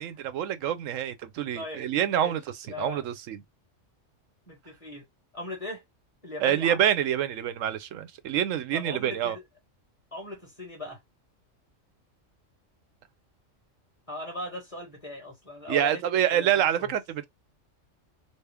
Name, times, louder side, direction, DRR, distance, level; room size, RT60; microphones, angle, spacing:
voice 1, 0.0-2.4 2.8-3.4 6.4-9.4 15.7-17.3, right 10 dB, 80° right, 1.0 m, -26 dB
voice 2, 1.5-2.3 2.7-3.0 4.5-5.0 5.3-5.8 6.2-6.9 8.7-9.4 10.1-11.0 14.1-16.0 16.3-16.7, left 1 dB, 25° left, 1.5 m, -39 dB
4.2 x 2.0 x 3.3 m
omnidirectional pair, 1.3 m